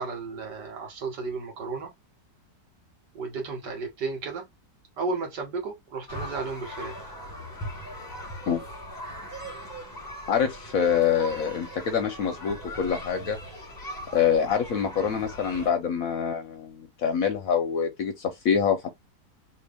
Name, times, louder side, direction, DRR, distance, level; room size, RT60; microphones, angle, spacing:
voice 1, 0.0-1.9 3.1-4.5 5.0-7.1, right 4 dB, 70° right, 1.9 m, -33 dB
sound 1, 6.1-15.7, equal, 15° left, 1.0 m, -39 dB
voice 2, 10.3-13.4 14.1-18.9, left 7 dB, 65° left, 0.9 m, -25 dB
3.7 x 2.7 x 3.3 m
omnidirectional pair, 1.9 m